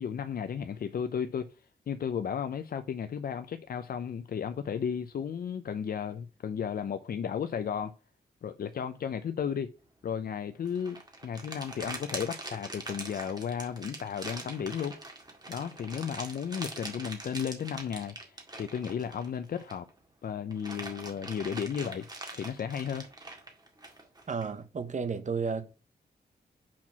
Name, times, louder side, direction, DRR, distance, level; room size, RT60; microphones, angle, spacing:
voice 1, 0.0-1.5 1.9-7.9 8.4-9.7 10.0-15.0 15.5-19.9 20.2-22.1 22.3-23.1, left 7 dB, 65° left, 0.6 m, -34 dB
sunflower seed bag, 10.6-19.9 20.3-24.5, right 2 dB, 25° right, 2.0 m, -43 dB
voice 2, 24.3-25.7, right 5 dB, 45° right, 0.9 m, -32 dB
5.8 x 4.5 x 5.9 m
wide cardioid pair, 105°, 17 cm